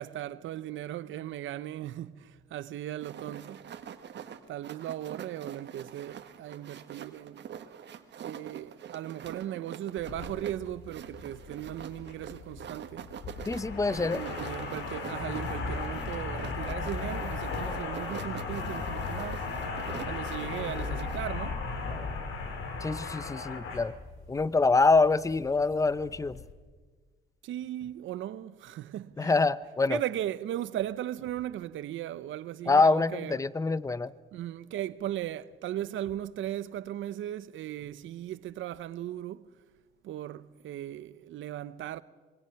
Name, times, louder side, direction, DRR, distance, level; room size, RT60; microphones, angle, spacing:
voice 1, 0.0-3.6 4.5-7.4 8.2-13.1 14.1-19.5 20.0-21.6 27.4-29.4 29.9-33.4 34.3-39.5 40.0-42.0, right 12 dB, 80° right, 0.8 m, -37 dB
sound 1, 3.0-21.3, right 8 dB, 60° right, 1.5 m, -45 dB
sound 2, 10.0-26.5, left 4 dB, 80° left, 3.0 m, -37 dB
voice 2, 13.5-14.2 22.8-23.9 24.3-26.4 29.2-30.0 32.7-34.1, left 3 dB, 15° left, 0.7 m, -25 dB
26.0 x 23.0 x 5.9 m
cardioid pair, 90°, 20 cm